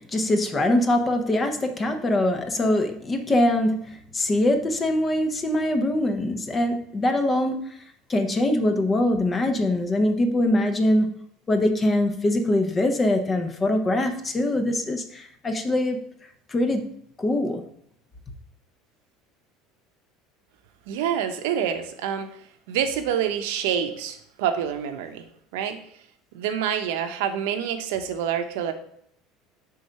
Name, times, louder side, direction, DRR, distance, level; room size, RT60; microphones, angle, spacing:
voice 1, 0.0-7.5 8.1-16.0 16.5-16.9 17.2-17.6, left 1 dB, 15° left, 6 dB, 0.6 m, -23 dB
voice 2, 20.9-22.3 22.7-25.2 25.5-25.8 26.3-28.7, right 8 dB, 85° right, 7 dB, 0.7 m, -27 dB
4.7 x 3.9 x 5.5 m, 0.68 s
cardioid pair, 160°, 0 cm